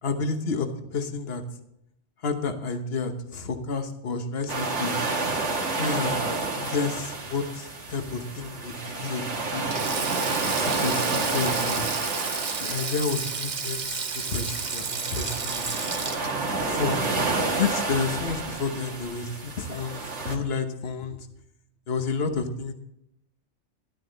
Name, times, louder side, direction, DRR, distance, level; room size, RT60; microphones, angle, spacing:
voice 1, 0.0-1.4 2.2-4.9 5.7-6.3 6.5-9.9 10.6-11.9 12.6-15.7 16.6-17.1 17.6-21.3 21.9-22.7, left 4 dB, 60° left, 7 dB, 1.3 m, -30 dB
sound 1, 4.5-20.4, right 3 dB, 75° right, 1.9 m, -30 dB
Sink (filling or washing), 9.6-18.0 18.3-18.5 19.7-20.0, right 5 dB, 40° right, 0.9 m, -33 dB
13.0 x 12.0 x 4.0 m, 0.79 s
omnidirectional pair, 1.2 m